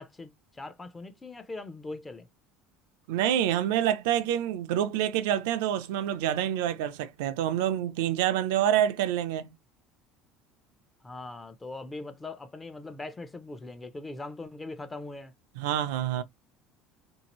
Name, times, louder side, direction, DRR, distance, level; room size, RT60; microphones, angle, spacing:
voice 1, 0.0-2.3 11.0-15.3, left 2 dB, 15° left, 0.6 m, -41 dB
voice 2, 3.1-9.5 15.6-16.2, right 11 dB, 90° right, 0.4 m, -27 dB
2.7 x 2.5 x 3.0 m
cardioid pair, 125°, 0 cm